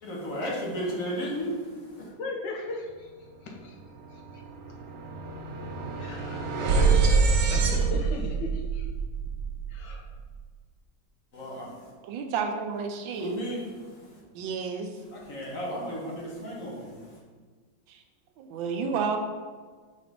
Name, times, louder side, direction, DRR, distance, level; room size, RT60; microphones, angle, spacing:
voice 1, 0.0-2.1 11.3-11.9 13.1-14.2 15.0-17.2, equal, 45° left, -4 dB, 1.6 m, -34 dB
voice 2, 2.2-3.1 3.4-3.7 5.9-8.9 9.7-10.1, left 3 dB, 70° left, 0 dB, 1.4 m, -36 dB
sound 1, 3.5-3.7 4.0-10.2, right 5 dB, 65° right, 1.0 m, -26 dB
voice 3, 12.0-13.3 14.3-14.9 17.9-18.0 18.4-19.2, right 6 dB, 85° right, 5 dB, 1.4 m, -31 dB
5.0 x 4.2 x 5.1 m, 1.5 s
omnidirectional pair, 2.1 m